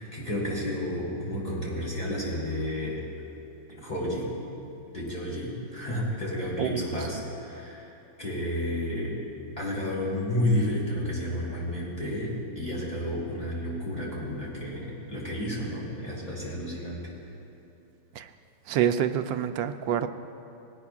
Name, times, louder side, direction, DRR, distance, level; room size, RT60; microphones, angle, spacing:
voice 1, 0.0-3.0 3.7-4.3 4.9-7.9 8.2-9.2 9.6-17.0, left 1 dB, 20° left, -6 dB, 3.4 m, -31 dB
voice 2, 18.7-20.1, right 9 dB, 80° right, 9 dB, 1.3 m, -26 dB
20.0 x 17.5 x 2.4 m, 2.8 s
omnidirectional pair, 2.0 m